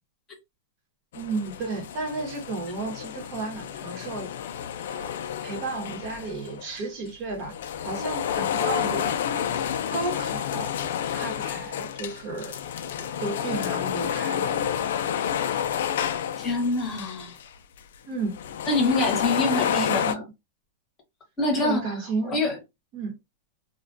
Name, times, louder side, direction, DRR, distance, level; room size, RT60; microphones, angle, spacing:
sound 1, 1.1-6.8 7.3-17.5 17.8-17.9 18.3-20.1, left 9 dB, 70° left, 0.3 m, -30 dB
voice 1, 1.1-4.3 4.9-7.5 7.8-9.2 9.9-10.7 11.1-12.6 12.9-14.6 18.1-18.4 19.6-20.2 21.5-22.4 22.9-23.2, right 3 dB, 40° right, 0.9 m, -33 dB
voice 2, 16.4-17.4 18.7-20.2 21.4-21.9 22.2-22.6, left 2 dB, 20° left, 0.9 m, -25 dB
2.3 x 2.1 x 2.5 m
supercardioid pair, 150°, 0 cm